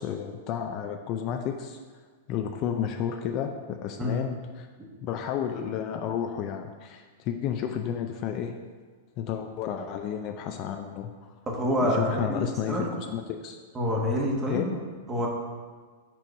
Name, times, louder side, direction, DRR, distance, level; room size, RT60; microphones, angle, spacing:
voice 1, 0.0-1.8 2.3-4.7 5.0-8.5 9.2-11.3 11.8-13.6 14.5-14.7, left 8 dB, 40° left, 5 dB, 0.4 m, -32 dB
voice 2, 11.5-12.4 12.7-12.9 13.7-14.7 15.1-15.3, equal, 20° right, -1 dB, 1.2 m, -27 dB
4.5 x 4.5 x 5.3 m, 1.5 s
hypercardioid pair, 135°, 0 cm